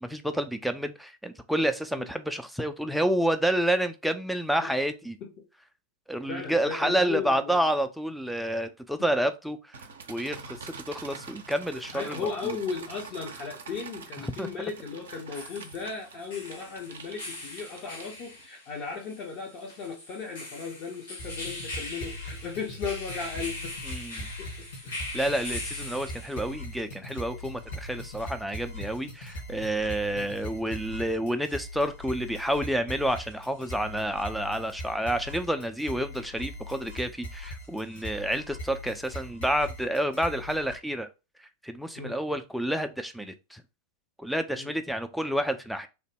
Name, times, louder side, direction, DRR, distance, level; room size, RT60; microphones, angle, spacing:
voice 1, 0.0-5.2 6.1-9.8 10.1-12.6 14.4-14.5 23.9-24.3 25.1-41.1 41.4-43.6 44.2-45.9, right 1 dB, ahead, 0.4 m, -29 dB
voice 2, 6.3-7.6 11.9-23.8 24.4-25.1 30.1-30.3 42.0-42.2 44.6-44.7, left 5 dB, 40° left, 0.6 m, -36 dB
sound 1, 9.7-18.5, right 5 dB, 65° right, 0.5 m, -45 dB
sound 2, 15.1-26.7, left 2 dB, 70° left, 1.5 m, -41 dB
sound 3, 21.2-40.8, left 1 dB, 55° left, 1.3 m, -41 dB
3.0 x 2.1 x 3.3 m
figure-of-eight pair, 90°, 0 cm